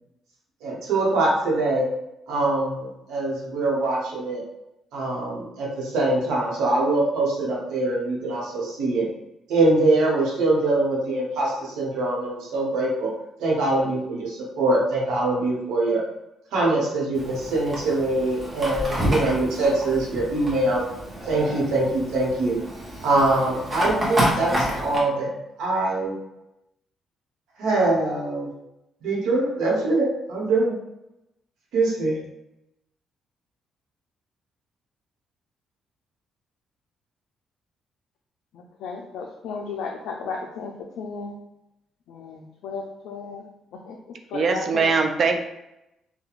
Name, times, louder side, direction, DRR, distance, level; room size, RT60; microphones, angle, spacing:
voice 1, 0.6-1.9 2.3-4.4 4.9-9.1 9.5-13.1 13.4-16.0 16.5-20.8 21.3-22.6 23.0-25.3 25.6-26.1 27.6-28.5 29.0-30.7 31.7-32.2, right 2 dB, 85° right, -4 dB, 0.9 m, -23 dB
Fire, 17.1-25.0, equal, 25° right, 0.9 m, -29 dB
voice 2, 38.5-41.3 42.1-43.4 43.8-44.0 44.3-44.9, left 5 dB, 85° left, 1 dB, 0.3 m, -34 dB
voice 3, 44.3-45.4, right 4 dB, 55° right, 5 dB, 0.4 m, -21 dB
2.4 x 2.2 x 3.0 m, 0.89 s
cardioid pair, 90°, 0 cm